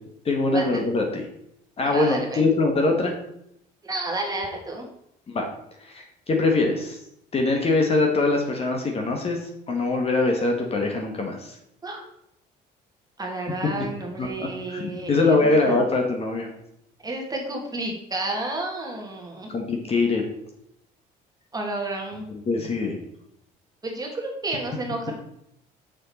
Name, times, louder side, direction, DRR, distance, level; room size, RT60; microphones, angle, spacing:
voice 1, 0.2-1.2 1.8-3.1 5.3-5.5 5.8-7.0 7.3-11.6 14.2-16.5 19.5-20.2 22.5-23.0, left 3 dB, 35° left, 2 dB, 1.4 m, -23 dB
voice 2, 1.8-2.4 3.8-4.9 11.8-12.1 13.2-15.8 17.0-19.5 21.5-22.2 23.8-25.1, right 2 dB, 20° right, 1 dB, 1.8 m, -31 dB
6.6 x 6.3 x 4.2 m, 0.77 s
cardioid pair, 110°, 17 cm